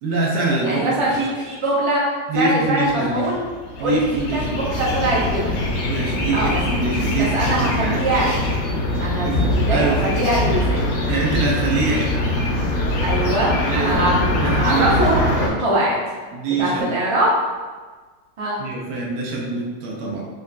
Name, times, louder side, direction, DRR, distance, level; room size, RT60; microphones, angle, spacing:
voice 1, 0.0-1.2 2.3-3.3 3.8-4.6 5.9-8.0 9.2-10.0 11.1-12.1 13.7-15.2 16.3-16.9 18.6-20.2, right 3 dB, 85° right, -3 dB, 1.3 m, -24 dB
voice 2, 0.6-2.0 2.3-3.4 3.8-5.5 6.3-6.6 7.3-8.4 9.0-10.8 13.0-16.0 16.6-17.3 18.4-18.6, right 1 dB, 55° right, -6 dB, 0.3 m, -22 dB
sound 1, 2.9-15.5, left 1 dB, 65° left, 0.7 m, -22 dB
4.1 x 2.4 x 2.2 m, 1.4 s
omnidirectional pair, 1.7 m